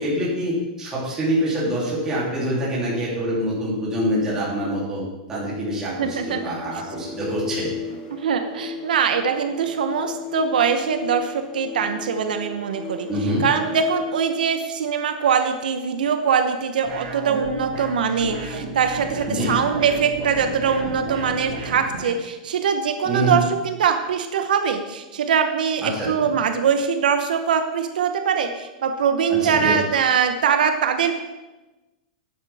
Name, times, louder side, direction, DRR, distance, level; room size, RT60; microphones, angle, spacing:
voice 1, 0.0-5.0 5.3-7.7 13.1-13.5 19.3-19.5 23.0-23.3 25.8-26.3 29.4-29.7, equal, 10° right, -6 dB, 3.0 m, -25 dB
sound 1, 5.9-14.3, left 7 dB, 20° left, 1.1 m, -35 dB
voice 2, 5.9-6.4 8.1-13.1 13.4-31.2, right 7 dB, 85° right, 7 dB, 1.0 m, -22 dB
sound 2, 16.8-22.2, right 2 dB, 60° right, 4.2 m, -33 dB
13.0 x 9.6 x 3.5 m, 1.1 s
supercardioid pair, 180°, 5 cm